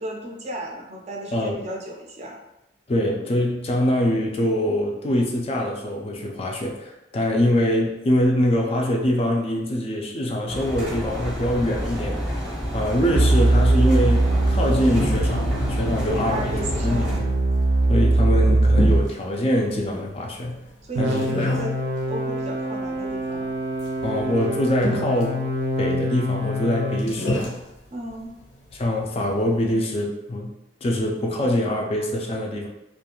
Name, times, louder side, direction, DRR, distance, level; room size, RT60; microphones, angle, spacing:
voice 1, 0.0-2.4 16.0-17.2 20.8-21.8 22.1-23.5 27.9-28.4, right 1 dB, 35° right, 0 dB, 0.4 m, -33 dB
voice 2, 1.3-1.7 2.9-12.5 12.7-16.6 16.8-17.3 17.9-20.6 21.0-21.5 24.0-25.4 25.8-27.6 28.7-30.5 30.8-32.7, left 1 dB, 35° left, 0 dB, 0.3 m, -24 dB
Engine, 10.5-17.2, equal, 5° right, 0.7 m, -28 dB
sound 1, 13.1-19.1 20.9-27.1, right 1 dB, 85° right, 0.6 m, -22 dB
sound 2, 14.0-29.7, left 1 dB, 85° left, 0.7 m, -34 dB
2.5 x 2.3 x 2.9 m, 0.91 s
head